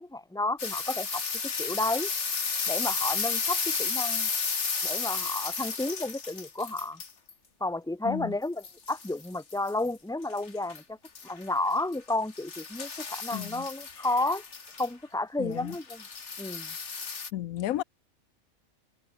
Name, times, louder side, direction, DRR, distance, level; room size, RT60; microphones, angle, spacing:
voice 1, 0.0-2.1 2.7-4.3 4.8-7.0 7.6-11.0 11.2-14.4 14.8-16.0 16.4-16.7, left 2 dB, 5° left, 1.4 m, -32 dB
sound 1, 0.6-7.3 8.6-9.9 10.4-10.8 11.0-14.9 15.7-17.3, left 5 dB, 55° left, 2.2 m, -33 dB
voice 2, 13.3-13.7 15.4-15.7 17.3-17.8, left 13 dB, 90° left, 1.1 m, -33 dB
omnidirectional pair, 1.4 m